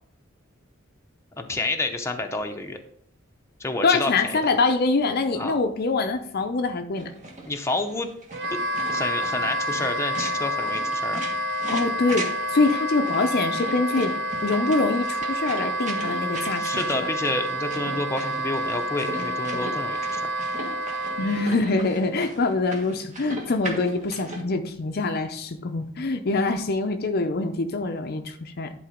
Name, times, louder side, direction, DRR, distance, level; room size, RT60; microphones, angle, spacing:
voice 1, 1.4-2.8 3.6-4.4 5.3-5.6 7.4-8.1 8.5-11.2 16.6-20.3, left 2 dB, 15° left, 4 dB, 0.8 m, -29 dB
voice 2, 3.8-7.1 11.7-14.2 14.4-16.9 21.2-28.7, left 3 dB, 50° left, 6 dB, 0.6 m, -24 dB
sound 1, 7.0-24.4, right 2 dB, 40° right, 1.6 m, -38 dB
Wind instrument woodwind instrument, 8.3-21.5, equal, 55° right, 1.0 m, -29 dB
10.5 x 3.9 x 5.1 m, 0.64 s
head